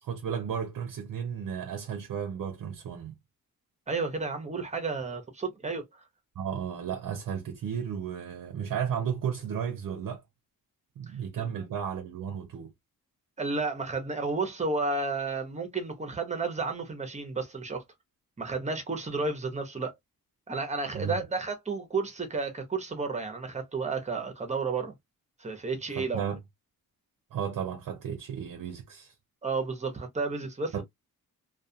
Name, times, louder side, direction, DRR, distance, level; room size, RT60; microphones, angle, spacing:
voice 1, 0.0-3.1 6.4-10.2 11.0-12.7 20.9-21.3 25.9-26.4 27.3-29.1 30.7-30.8, right 8 dB, 60° right, 0.6 m, -34 dB
voice 2, 3.9-5.8 11.4-11.5 13.4-17.8 18.4-19.9 20.5-24.9 25.4-26.2 29.4-30.8, right 4 dB, 20° right, 0.7 m, -32 dB
2.4 x 2.3 x 2.6 m
wide cardioid pair, 125°, 36 cm